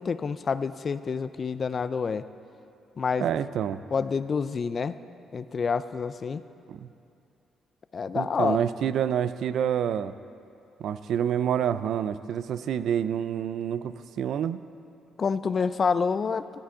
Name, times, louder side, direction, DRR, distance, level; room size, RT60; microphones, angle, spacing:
voice 1, 0.0-2.3 3.0-3.3 3.9-5.0 5.3-6.4 7.9-8.6 15.2-16.4, left 5 dB, 45° left, 14 dB, 0.3 m, -27 dB
voice 2, 3.2-3.8 6.7-6.9 8.1-10.1 10.8-14.6, right 9 dB, 70° right, 14 dB, 0.3 m, -28 dB
14.5 x 8.2 x 3.8 m, 2.5 s
cardioid pair, 90°, 0 cm